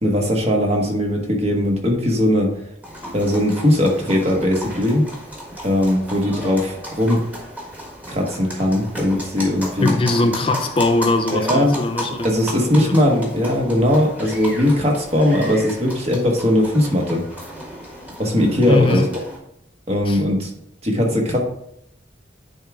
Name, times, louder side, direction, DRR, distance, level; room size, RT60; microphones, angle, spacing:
voice 1, 0.0-2.5 3.1-5.0 5.6-7.2 8.1-9.9 11.3-11.7 12.2-17.2 18.2-19.0 19.9-20.5 20.8-21.4, left 1 dB, 35° right, 0 dB, 1.4 m, -19 dB
sound 1, 2.8-19.4, equal, 10° right, 1.5 m, -34 dB
voice 2, 9.8-12.3 12.7-12.9 18.7-19.1 20.1-20.2, left 2 dB, 30° left, 6 dB, 0.4 m, -20 dB
9.8 x 3.6 x 3.5 m, 0.75 s
head